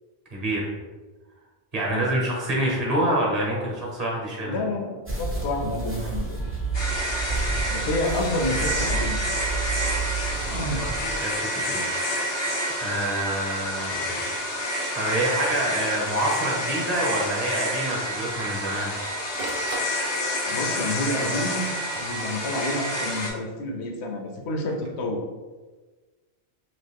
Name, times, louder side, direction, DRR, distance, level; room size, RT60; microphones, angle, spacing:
voice 1, 0.3-0.7 1.7-4.6 10.5-10.9 11.2-11.9 12.2-12.3 12.8-14.1 14.6-18.9, right 1 dB, 40° right, -3 dB, 1.0 m, -27 dB
voice 2, 4.4-6.4 7.7-9.2 10.5-10.9 20.5-21.7 22.0-25.2, left 1 dB, 80° left, 1 dB, 0.9 m, -29 dB
sound 1, 5.1-11.2, right 4 dB, 20° right, 0.4 m, -30 dB
sound 2, 6.7-23.3, equal, 30° left, 0.5 m, -29 dB
Printer, 15.9-16.0 16.3-16.4 16.8-16.9 17.5-17.8 18.4-20.5 21.3-22.8 24.5-24.9, right 3 dB, 65° right, 0.8 m, -40 dB
3.0 x 2.5 x 3.4 m, 1.3 s
omnidirectional pair, 1.1 m